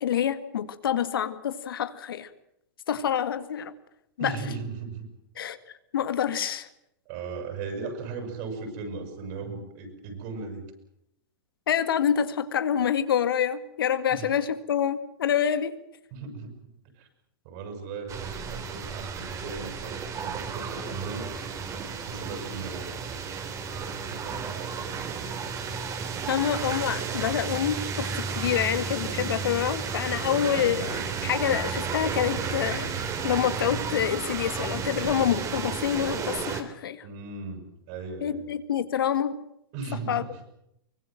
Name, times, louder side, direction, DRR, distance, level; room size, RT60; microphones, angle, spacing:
voice 1, 0.0-2.3 2.9-3.7 4.2-4.4 5.4-5.6 5.9-6.7 11.7-15.8 26.3-37.0 38.2-39.4 40.1-40.2, left 9 dB, 75° left, 12 dB, 1.9 m, -27 dB
voice 2, 4.2-5.1 7.1-10.7 14.1-14.3 16.1-16.5 16.9-17.1 17.4-21.3 22.1-22.9 24.0-24.9 37.0-38.4 39.7-40.4, right 4 dB, 50° right, 7 dB, 7.2 m, -37 dB
sound 1, 18.1-36.6, right 6 dB, 25° right, 3.3 m, -33 dB
sound 2, 25.2-34.2, right 6 dB, 75° right, 6.6 m, -45 dB
24.0 x 20.0 x 7.7 m, 0.77 s
hypercardioid pair, 120°, 12 cm